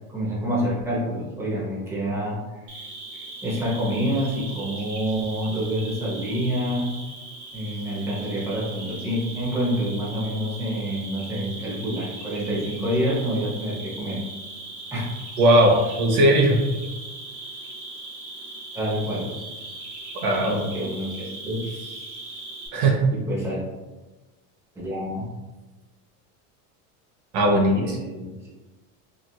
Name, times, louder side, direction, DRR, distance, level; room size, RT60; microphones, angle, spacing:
voice 1, 0.1-2.9 3.4-6.9 7.5-14.2 14.9-15.1 18.7-19.3 20.5-22.2 23.1-23.6 24.8-25.2 27.3-28.5, equal, 5° right, -6 dB, 0.6 m, -28 dB
Cricket, 2.7-22.7, right 2 dB, 90° right, 1.4 m, -39 dB
voice 2, 15.4-16.6 20.2-20.6 22.7-23.0 27.3-28.0, right 1 dB, 70° right, 1 dB, 0.8 m, -18 dB
3.0 x 2.5 x 2.2 m, 1.2 s
supercardioid pair, 130°, 44 cm